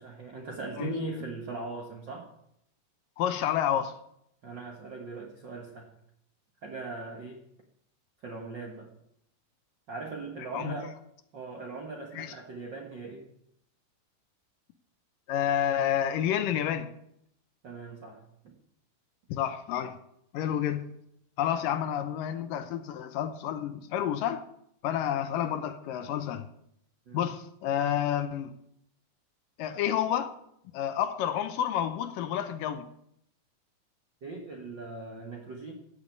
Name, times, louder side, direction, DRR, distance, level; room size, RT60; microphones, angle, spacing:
voice 1, 0.0-2.3 4.4-5.9 6.6-7.5 8.2-8.9 9.9-10.9 11.3-13.3 17.6-18.5 27.1-27.2 34.2-35.7, right 3 dB, 60° right, 1.2 m, -39 dB
voice 2, 3.2-4.0 10.5-10.8 12.1-12.3 15.3-16.9 19.3-20.0 20.3-20.9 21.4-24.4 24.8-26.5 27.1-28.5 29.6-30.3 30.7-32.9, left 10 dB, 75° left, 2.3 m, -29 dB
15.0 x 6.8 x 8.4 m
omnidirectional pair, 4.2 m